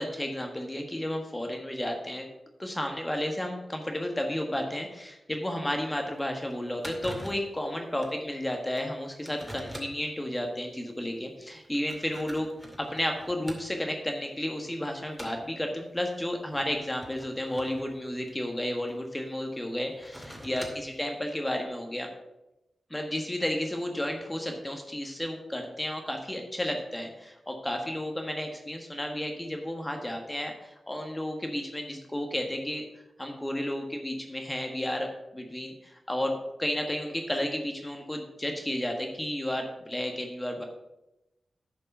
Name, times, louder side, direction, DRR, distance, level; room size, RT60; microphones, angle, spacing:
voice 1, 0.0-2.3 2.6-12.5 12.8-22.1 22.9-40.6, left 1 dB, 15° left, 3 dB, 1.5 m, -32 dB
sound 1, 5.7-5.8 6.2-6.3 6.5-6.6 6.8-7.5 8.0-8.2 8.8-8.9 9.3-10.1 10.9-11.0 11.6-13.9 14.4-14.7 15.1-15.5 16.4-18.9 19.8-21.0, equal, ahead, 2.3 m, -44 dB
10.0 x 5.2 x 5.6 m, 0.93 s
cardioid pair, 50°, 0 cm